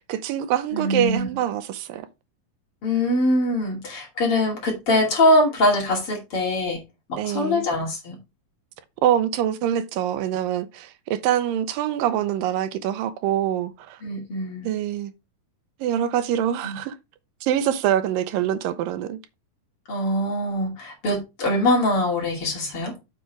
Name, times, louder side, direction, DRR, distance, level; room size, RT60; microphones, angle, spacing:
voice 1, 0.1-2.1 7.2-7.7 9.0-14.0 14.6-15.1 15.8-17.0 17.4-19.2, right 11 dB, 85° right, 2.4 m, -24 dB
voice 2, 0.7-1.3 2.8-6.8 7.1-8.2 14.0-14.7 16.6-16.8 19.9-22.9, left 1 dB, 40° left, 3.2 m, -23 dB
7.9 x 4.9 x 4.6 m
omnidirectional pair, 4.0 m